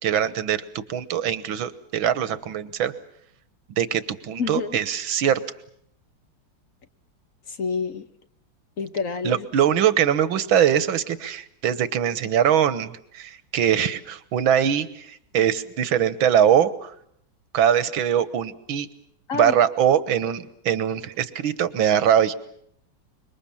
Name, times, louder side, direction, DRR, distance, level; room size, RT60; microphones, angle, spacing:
voice 1, 0.0-2.9 3.8-5.4 9.2-16.9 17.5-18.9 19.3-22.4, right 9 dB, 90° right, 15 dB, 2.0 m, -22 dB
voice 2, 4.4-4.8 7.5-8.0 8.8-9.5 19.3-19.6, left 5 dB, 50° left, 10 dB, 1.4 m, -28 dB
26.0 x 23.0 x 7.3 m, 0.68 s
omnidirectional pair, 2.1 m